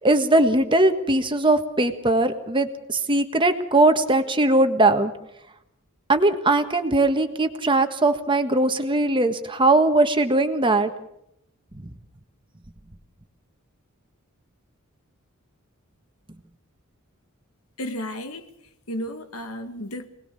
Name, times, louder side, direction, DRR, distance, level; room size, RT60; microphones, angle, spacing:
voice 1, 0.0-5.1 6.1-10.9, right 2 dB, 25° right, 7 dB, 1.6 m, -20 dB
voice 2, 17.8-18.5 18.9-20.1, equal, 75° left, 8 dB, 2.0 m, -33 dB
25.5 x 19.5 x 7.0 m, 0.79 s
head